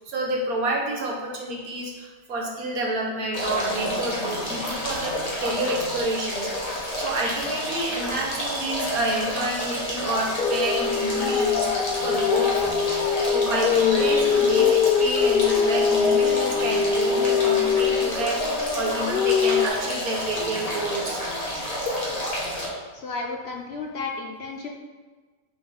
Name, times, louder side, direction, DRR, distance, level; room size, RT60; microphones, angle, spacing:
voice 1, 0.1-6.5 6.9-21.2 22.7-22.8, right 1 dB, 80° right, -1 dB, 1.6 m, -29 dB
sound 1, 3.3-22.7, equal, 25° left, 1.4 m, -30 dB
sound 2, 10.4-19.7, left 7 dB, 90° left, 0.4 m, -22 dB
voice 2, 22.9-24.7, left 3 dB, 60° left, 1 dB, 0.7 m, -33 dB
6.1 x 5.0 x 3.9 m, 1.4 s
omnidirectional pair, 1.5 m